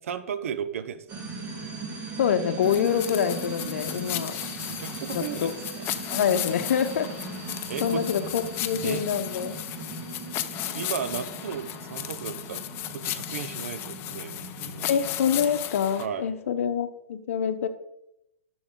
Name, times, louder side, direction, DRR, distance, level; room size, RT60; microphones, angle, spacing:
voice 1, 0.0-1.2 4.7-5.9 7.7-8.2 8.8-9.0 10.7-12.6 12.9-15.0 16.0-16.3, right 8 dB, 70° right, 12 dB, 0.8 m, -35 dB
sound 1, 1.1-15.6, right 3 dB, 25° right, 2.1 m, -39 dB
voice 2, 2.2-4.4 5.1-5.5 6.1-7.1 7.8-9.6 14.9-17.7, left 8 dB, 65° left, 11 dB, 0.9 m, -26 dB
sound 2, 2.6-16.1, left 13 dB, 30° left, 0.6 m, -35 dB
11.0 x 6.2 x 3.8 m, 0.85 s
hypercardioid pair, 140°, 8 cm